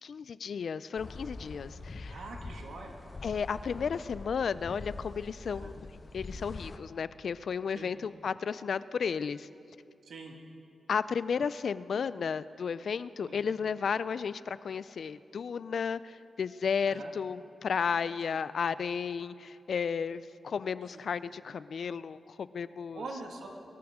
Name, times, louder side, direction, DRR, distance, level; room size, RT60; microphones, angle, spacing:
voice 1, 0.0-2.2 3.2-5.9 6.1-9.5 10.9-23.1, left 6 dB, 70° left, 16 dB, 0.4 m, -33 dB
sound 1, 1.0-6.8, left 3 dB, 40° left, 0.9 m, -44 dB
voice 2, 2.1-3.0 5.5-5.7 7.7-7.9 10.1-10.3 13.2-13.4 16.9-17.1 18.3-18.4 22.9-23.5, right 3 dB, 80° right, 2 dB, 1.9 m, -43 dB
22.5 x 13.5 x 3.7 m, 2.7 s
cardioid pair, 65°, 0 cm